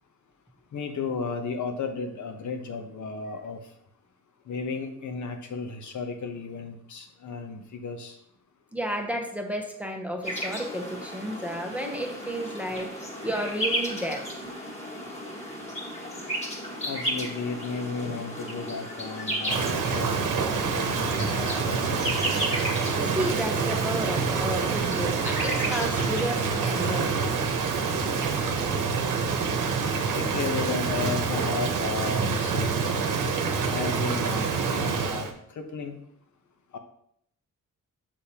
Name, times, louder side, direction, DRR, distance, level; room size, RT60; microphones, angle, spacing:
voice 1, 0.7-3.6 4.5-8.2 16.8-20.1 20.7-22.4 30.1-33.2 33.7-35.3 35.5-36.0 36.7-36.8, left 4 dB, 65° left, 6 dB, 0.9 m, -34 dB
voice 2, 8.7-14.3 23.0-27.2, equal, 5° right, 2 dB, 0.8 m, -32 dB
sound 1, 10.2-27.5, equal, 20° left, 1.5 m, -34 dB
Rain, 19.5-35.3, right 5 dB, 80° right, 0.9 m, -27 dB
6.6 x 5.3 x 2.9 m, 0.70 s
cardioid pair, 100°, 31 cm